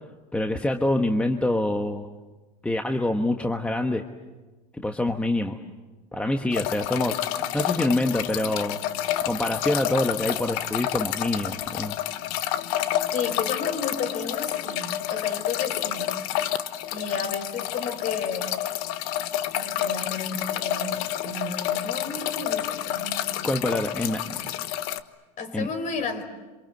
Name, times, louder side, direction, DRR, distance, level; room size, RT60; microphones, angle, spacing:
voice 1, 0.3-2.1 2.6-4.0 4.8-5.6 6.1-7.2 7.5-8.8 9.2-11.9 23.4-24.4 25.5-25.7, left 1 dB, 5° left, 4 dB, 1.3 m, -25 dB
sound 1, 6.5-25.0, left 12 dB, 60° left, 1.3 m, -29 dB
voice 2, 13.1-16.1 16.9-18.6 19.5-23.4 25.4-26.2, left 5 dB, 35° left, 7 dB, 5.3 m, -32 dB
27.5 x 26.5 x 7.9 m, 1.2 s
supercardioid pair, 125°, 21 cm